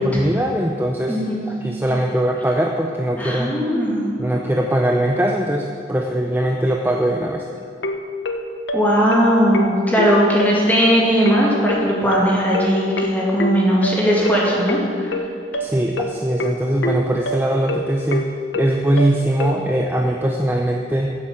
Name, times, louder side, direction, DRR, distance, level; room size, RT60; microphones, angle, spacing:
voice 1, 0.0-1.2 1.5-3.5 4.2-7.4 15.6-21.2, right 1 dB, 10° right, 1 dB, 0.5 m, -21 dB
voice 2, 1.1-1.4 3.2-4.2 8.7-15.2, equal, 10° left, -4 dB, 2.2 m, -18 dB
sound 1, 7.6-19.6, left 1 dB, 70° left, 0.8 m, -26 dB
10.5 x 7.5 x 7.5 m, 2.4 s
head